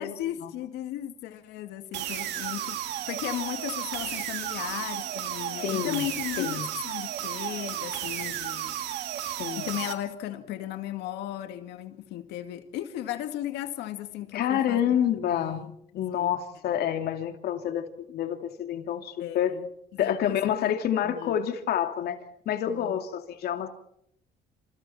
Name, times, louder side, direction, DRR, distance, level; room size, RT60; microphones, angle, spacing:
voice 1, 0.0-2.8 3.1-8.8 9.6-15.7 16.1-16.4 19.2-19.7 19.9-20.7 21.0-21.4 22.7-23.0, left 12 dB, 85° left, 2.4 m, -36 dB
sound 1, 1.9-9.9, right 11 dB, 85° right, 2.5 m, -33 dB
voice 2, 5.6-6.0 6.4-6.7 9.4-9.7 14.3-15.6 15.9-19.5 20.0-22.2 22.4-23.7, left 10 dB, 70° left, 2.8 m, -28 dB
27.5 x 27.5 x 4.4 m
cardioid pair, 110°, 17 cm